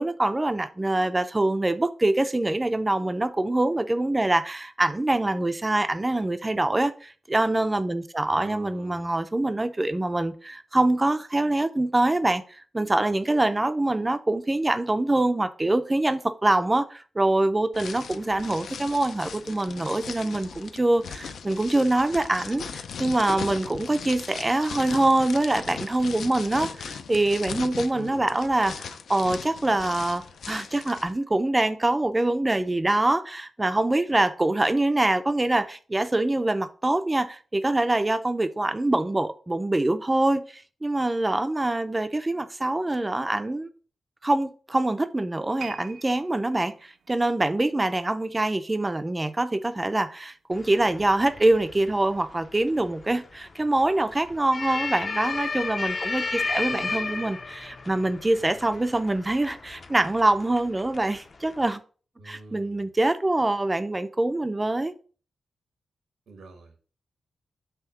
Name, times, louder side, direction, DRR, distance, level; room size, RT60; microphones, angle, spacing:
voice 1, 0.0-43.7 44.2-61.8 62.3-64.9, right 2 dB, 15° right, 0.4 m, -24 dB
voice 2, 8.2-9.1 27.9-28.2 56.4-57.2 62.2-62.8 66.3-66.7, right 3 dB, 90° right, 1.3 m, -45 dB
sound 1, 17.7-31.1, left 6 dB, 75° left, 0.6 m, -38 dB
sound 2, 45.6-48.9 49.2-49.5 50.1-50.2, right 6 dB, 70° right, 0.6 m, -46 dB
sound 3, 50.5-61.8, left 4 dB, 35° left, 0.6 m, -34 dB
5.7 x 3.5 x 5.9 m
wide cardioid pair, 165°, 0 cm